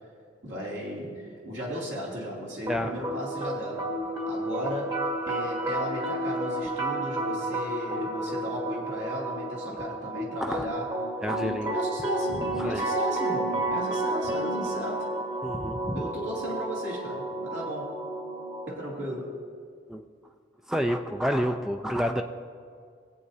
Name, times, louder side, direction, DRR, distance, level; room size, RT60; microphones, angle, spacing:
voice 1, 0.4-3.9 4.3-11.0 11.4-15.1 15.9-18.0 18.7-19.4, equal, 70° right, -4 dB, 2.6 m, -35 dB
sound 1, 2.7-18.7, right 1 dB, 25° right, 1.3 m, -31 dB
voice 2, 11.2-11.8 12.6-12.8 15.4-16.0 19.9-20.0 20.7-22.2, equal, ahead, 5 dB, 0.3 m, -29 dB
20.0 x 8.4 x 2.7 m, 2.2 s
head